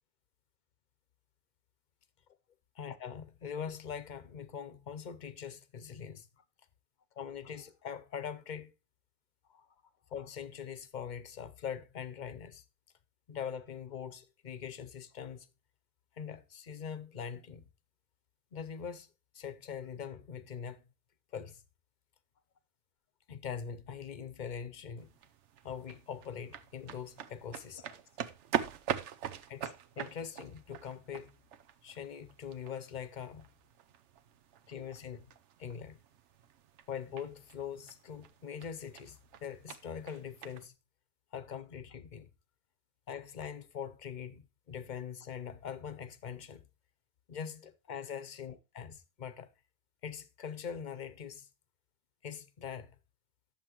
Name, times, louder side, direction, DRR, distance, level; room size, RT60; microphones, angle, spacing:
voice 1, 2.8-6.4 7.2-8.7 9.5-9.7 10.1-12.6 13.3-15.5 16.2-17.7 18.5-19.1 19.3-20.8 21.3-21.6 23.3-25.1 25.6-27.8 29.5-31.3 31.8-33.5 34.7-35.3 35.6-36.0 36.9-40.7 41.3-42.3 43.1-46.6 47.3-49.5 50.0-51.5 52.2-53.0, left 7 dB, 45° left, 0.8 m, -42 dB
sound 1, 25.0-40.7, right 9 dB, 80° right, 1.0 m, -43 dB
11.0 x 7.3 x 3.0 m
omnidirectional pair, 1.2 m